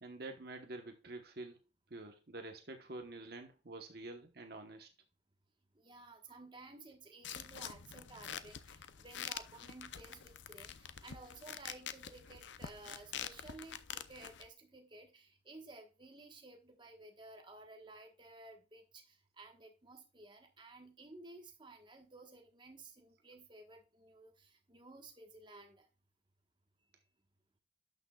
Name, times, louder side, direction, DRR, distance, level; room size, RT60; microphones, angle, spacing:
voice 1, 0.0-1.6 1.9-4.9 6.3-6.4, right 2 dB, 50° right, 1.1 m, -48 dB
voice 2, 5.7-25.9, right 2 dB, 25° right, 1.3 m, -55 dB
sound 1, 7.2-14.5, left 9 dB, 70° left, 0.6 m, -47 dB
12.0 x 6.4 x 2.3 m
head